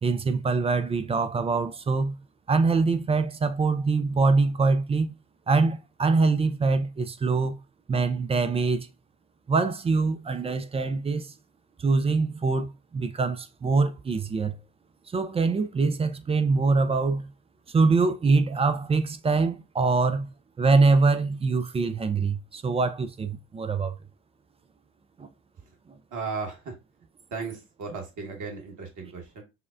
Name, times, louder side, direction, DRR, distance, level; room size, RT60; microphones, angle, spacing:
voice 1, 0.0-2.2 2.5-5.1 5.5-7.6 7.9-8.9 9.5-11.3 11.8-14.6 15.1-17.3 17.7-20.3 20.6-24.0 25.2-25.3 25.9-26.0, right 4 dB, 15° right, 0.3 m, -24 dB
voice 2, 26.1-26.7 27.3-29.4, right 4 dB, 50° right, 1.4 m, -35 dB
5.5 x 2.0 x 2.4 m
figure-of-eight pair, 50°, 39 cm